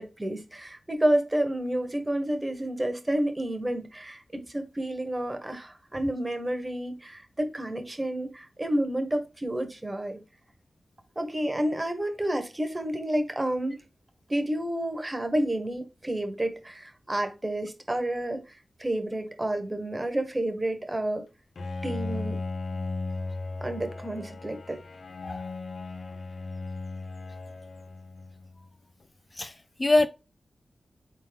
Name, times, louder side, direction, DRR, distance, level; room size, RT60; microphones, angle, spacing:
voice 1, 0.0-10.2 11.2-13.8 14.3-21.2 21.8-22.4 23.6-24.8, right 1 dB, 25° right, 1.2 m, -30 dB
Bowed string instrument, 21.5-28.7, left 3 dB, 70° left, 0.7 m, -36 dB
voice 2, 29.3-30.1, left 2 dB, 35° left, 0.4 m, -25 dB
3.9 x 3.7 x 3.5 m
cardioid pair, 45°, 0 cm